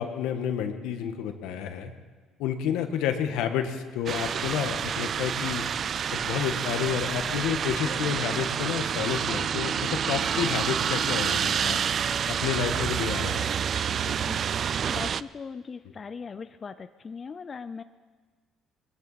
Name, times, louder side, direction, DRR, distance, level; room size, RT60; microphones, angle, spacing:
voice 1, 0.0-1.9 2.4-5.6 6.1-11.8 12.3-13.5 14.0-14.2, left 8 dB, 80° left, 7 dB, 1.3 m, -30 dB
sound 1, 4.1-15.2, right 8 dB, 50° right, 0.4 m, -28 dB
voice 2, 14.1-14.4 14.9-17.8, left 5 dB, 40° left, 11 dB, 0.5 m, -39 dB
20.5 x 14.5 x 4.1 m, 1.4 s
supercardioid pair, 80°, 0 cm